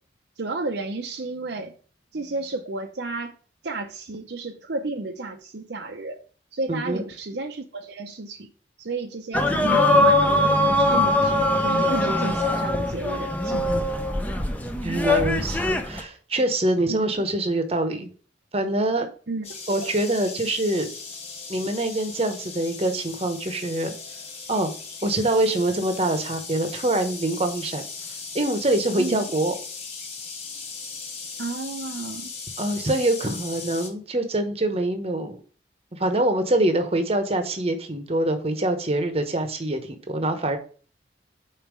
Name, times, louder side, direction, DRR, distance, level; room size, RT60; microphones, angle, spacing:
voice 1, 0.4-1.7 2.1-3.3 3.6-6.2 6.5-8.5 8.8-13.9 16.9-17.2 19.3-19.5 29.0-29.3 31.4-32.3, right 2 dB, 60° right, 0.7 m, -32 dB
voice 2, 6.7-7.0 14.8-18.1 18.5-19.1 19.7-20.9 21.5-23.9 24.5-24.7 25.0-27.8 28.3-29.5 32.6-35.4 35.9-40.6, right 1 dB, 30° right, 0.9 m, -24 dB
sound 1, 9.3-16.0, left 1 dB, 10° left, 0.6 m, -21 dB
sound 2, 19.4-33.9, left 5 dB, 35° left, 1.4 m, -38 dB
5.4 x 4.1 x 6.1 m
head